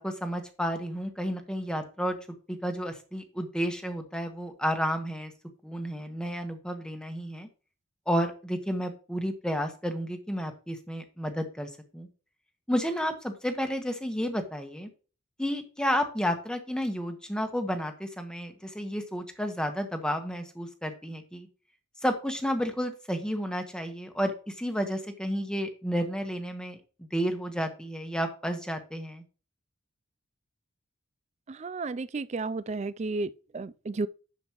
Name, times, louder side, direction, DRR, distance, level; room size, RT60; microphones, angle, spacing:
voice 1, 0.0-2.2 2.5-5.3 5.6-7.5 8.1-12.1 12.7-14.9 15.4-21.5 22.0-29.2, equal, 5° left, 1.2 m, -31 dB
voice 2, 31.5-34.1, right 3 dB, 30° right, 0.4 m, -33 dB
10.5 x 7.2 x 3.0 m
head